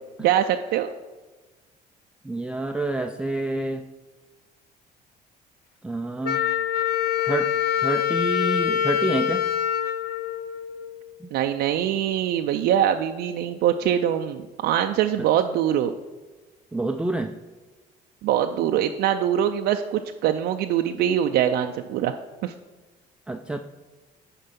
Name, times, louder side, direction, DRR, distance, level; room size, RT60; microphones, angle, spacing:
voice 1, 0.2-0.9 11.3-15.9 18.2-22.1 22.4-22.5, right 10 dB, 75° right, 5 dB, 0.4 m, -23 dB
voice 2, 2.2-3.8 5.8-6.4 7.2-7.5 7.8-9.5 11.2-11.3 15.2-15.3 16.7-17.3 23.3-23.6, right 2 dB, 5° right, 6 dB, 0.4 m, -28 dB
Wind instrument woodwind instrument, 6.2-11.0, left 10 dB, 70° left, 0.7 m, -25 dB
9.9 x 4.6 x 5.2 m, 1.3 s
cardioid pair, 110°, 17 cm